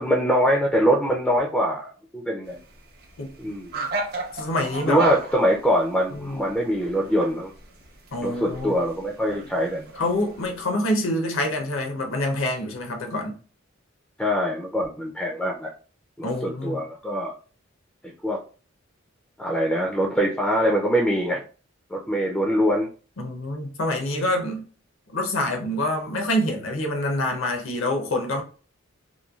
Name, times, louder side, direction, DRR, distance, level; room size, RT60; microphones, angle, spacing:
voice 1, 0.0-2.6 3.4-3.7 4.9-7.5 8.2-9.8 14.2-15.7 16.2-17.3 18.2-18.4 19.4-21.4 21.9-22.9 24.1-24.2, equal, 5° left, 0.3 m, -23 dB
sound 1, 2.4-10.6, right 2 dB, 50° right, 0.7 m, -36 dB
voice 2, 4.3-5.0 6.1-6.4 8.1-8.8 9.9-13.4 16.2-16.8 23.2-24.6 25.1-28.4, left 1 dB, 65° left, 0.7 m, -26 dB
3.0 x 2.2 x 2.3 m
head